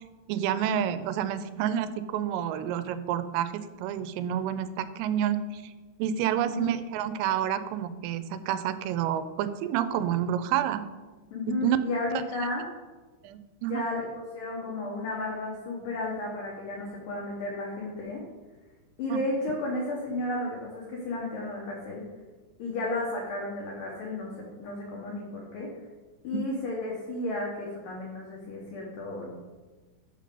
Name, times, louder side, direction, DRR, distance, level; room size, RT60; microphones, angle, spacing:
voice 1, 0.3-5.7 6.0-10.9 11.5-11.8 13.2-13.9 19.1-19.2, right 10 dB, 90° right, 12 dB, 3.2 m, -29 dB
voice 2, 6.3-6.7 11.3-12.7 13.6-18.2 19.0-22.0 22.6-25.7 26.2-29.3, left 2 dB, 85° left, -3 dB, 1.9 m, -33 dB
7.0 x 5.2 x 6.7 m, 1.3 s
omnidirectional pair, 5.7 m